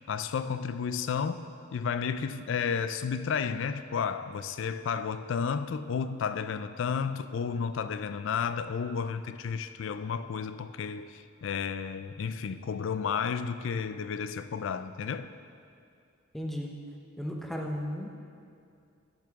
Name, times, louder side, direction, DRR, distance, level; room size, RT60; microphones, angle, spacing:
voice 1, 0.1-1.5 1.7-15.3, left 6 dB, 60° left, 0.3 m, -32 dB
voice 2, 16.3-16.7 17.2-18.2, equal, ahead, 0.7 m, -35 dB
11.5 x 7.5 x 3.6 m
head